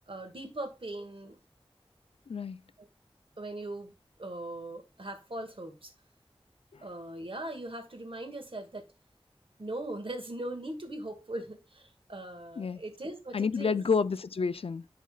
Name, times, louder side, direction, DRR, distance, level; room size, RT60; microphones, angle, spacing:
voice 1, 0.1-1.4 2.8-2.9 3.4-3.9 4.2-5.9 6.8-8.8 9.6-13.8, right 1 dB, 65° right, 1.6 m, -40 dB
voice 2, 2.3-2.6 12.6-12.8 13.3-15.0, left 5 dB, 75° left, 0.4 m, -29 dB
11.0 x 4.2 x 2.2 m
wide cardioid pair, 60°, 10 cm